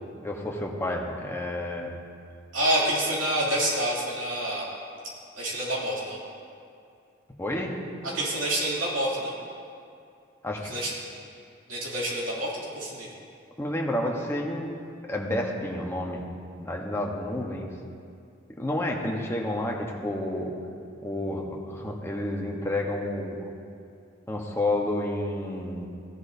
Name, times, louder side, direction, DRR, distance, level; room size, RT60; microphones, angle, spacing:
voice 1, 0.2-1.9 7.4-7.8 10.4-10.7 13.6-14.7 15.1-16.2 16.6-17.7 18.6-20.5 21.0-23.5 24.3-25.9, left 1 dB, 15° left, -1 dB, 1.1 m, -30 dB
voice 2, 2.5-4.7 5.4-6.2 8.0-9.4 10.6-10.9 11.7-13.1, right 1 dB, 80° right, -5 dB, 2.9 m, -27 dB
16.0 x 11.0 x 2.8 m, 2.4 s
head